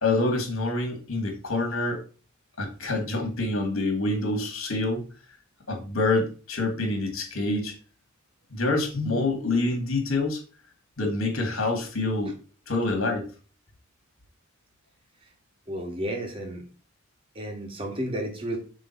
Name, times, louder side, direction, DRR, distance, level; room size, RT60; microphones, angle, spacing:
voice 1, 0.0-2.0 2.6-5.0 5.7-7.7 8.5-10.4 11.0-12.3 12.7-13.3, left 2 dB, 70° left, 3 dB, 2.2 m, -26 dB
voice 2, 15.7-16.6 17.4-18.6, right 1 dB, 25° right, 2 dB, 1.8 m, -32 dB
6.3 x 3.6 x 5.8 m, 0.37 s
head